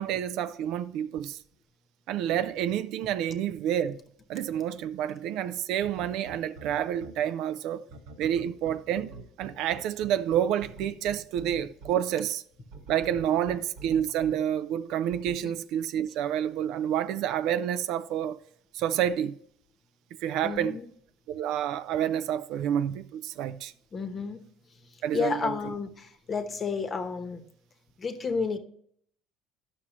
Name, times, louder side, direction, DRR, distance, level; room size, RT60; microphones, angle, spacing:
voice 1, 0.0-1.4 2.1-4.0 4.3-7.8 8.2-9.1 9.4-12.4 12.9-18.4 18.7-19.4 20.2-20.8 21.3-23.7 25.0-25.5, right 10 dB, 65° right, 0.4 m, -29 dB
sound 1, 5.8-7.1 7.9-11.9 12.7-14.3 15.1-15.4, right 4 dB, 80° right, 1.5 m, -44 dB
voice 2, 20.4-20.9 23.9-24.4 25.1-27.4 28.0-28.6, left 4 dB, 25° left, 0.9 m, -31 dB
11.0 x 6.0 x 3.0 m
cardioid pair, 145°, 0 cm